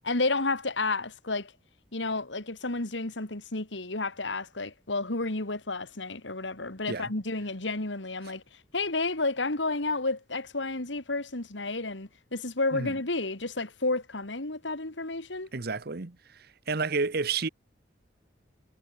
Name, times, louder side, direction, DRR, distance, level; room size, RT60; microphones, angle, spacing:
voice 1, 0.0-1.5 1.9-8.4 8.7-15.5, left 3 dB, 80° left, 2.9 m, -31 dB
voice 2, 15.5-16.2 16.7-17.5, right 4 dB, 55° right, 1.1 m, -30 dB
head